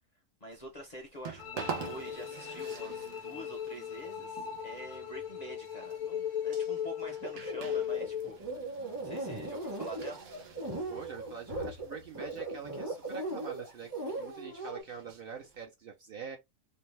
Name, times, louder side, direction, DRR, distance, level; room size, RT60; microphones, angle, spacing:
voice 1, 0.4-8.7 9.0-10.2, right 1 dB, 50° left, 0.5 m, -46 dB
sound 1, 0.5-15.6, right 6 dB, 90° right, 1.2 m, -47 dB
sound 2, 1.4-8.4, left 9 dB, 80° left, 0.9 m, -37 dB
sound 3, 7.2-14.8, right 2 dB, 25° right, 0.5 m, -38 dB
voice 2, 10.9-16.4, right 6 dB, 60° right, 0.7 m, -45 dB
2.6 x 2.2 x 3.1 m
omnidirectional pair, 1.3 m